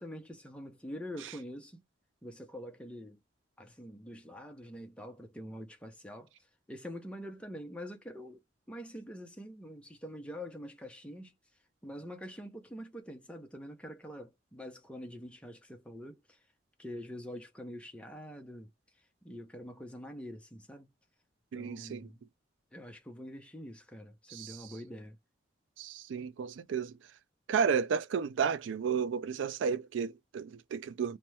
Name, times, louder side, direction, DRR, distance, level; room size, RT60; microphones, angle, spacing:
voice 1, 0.0-1.8 2.2-3.2 3.6-6.3 6.7-8.4 8.7-11.3 11.8-16.4 16.8-18.7 19.2-20.9 21.5-22.2 22.7-25.2, equal, 5° left, 0.6 m, -45 dB
voice 2, 21.5-22.1 24.3-24.6 25.8-27.0 27.5-31.2, right 6 dB, 90° right, 0.3 m, -32 dB
2.8 x 2.2 x 3.2 m
head